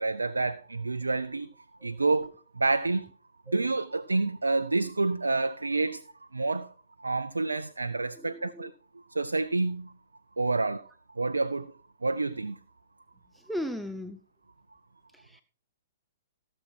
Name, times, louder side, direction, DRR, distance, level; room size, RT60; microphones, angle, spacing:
voice 1, 0.0-1.5 1.8-3.1 3.5-6.0 6.3-6.7 7.0-8.7 9.1-9.9 10.4-10.9 11.2-11.7 12.0-12.6, right 3 dB, 80° right, 0.5 m, -28 dB
voice 2, 8.1-8.7 13.3-14.2 15.1-15.4, equal, ahead, 0.5 m, -38 dB
16.5 x 7.2 x 4.5 m
figure-of-eight pair, 115°, 0 cm